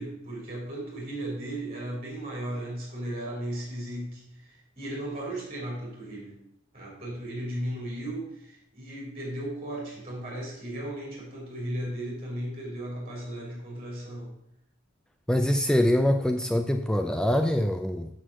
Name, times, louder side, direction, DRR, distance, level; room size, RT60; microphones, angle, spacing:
voice 1, 0.0-6.4 6.7-14.3, right 1 dB, 30° right, -3 dB, 3.6 m, -36 dB
voice 2, 15.3-18.1, left 1 dB, 5° left, 6 dB, 0.4 m, -24 dB
7.4 x 6.5 x 6.2 m, 0.74 s
head